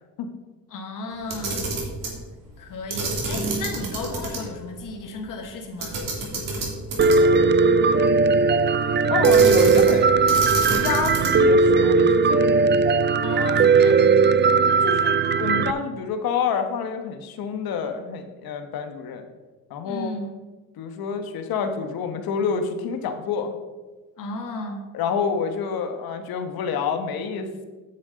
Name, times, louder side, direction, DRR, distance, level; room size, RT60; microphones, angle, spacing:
voice 1, 0.7-1.7 2.6-6.0 13.2-14.0 19.8-20.3 24.2-24.9, left 2 dB, 60° left, 2 dB, 1.8 m, -34 dB
Camera, 1.2-2.2 2.9-4.4 4.7-4.8 5.8-7.4 9.2-10.0 10.3-11.5, right 3 dB, 65° right, 3.4 m, -28 dB
voice 2, 7.0-8.1 9.1-10.1 10.7-12.7 14.8-19.2 19.7-20.1 20.8-23.5 24.9-27.7, left 6 dB, 80° left, 7 dB, 1.4 m, -28 dB
Piano, 7.0-15.7, right 4 dB, 30° right, 0.5 m, -18 dB
9.5 x 7.4 x 5.2 m, 1.2 s
cardioid pair, 85°, 36 cm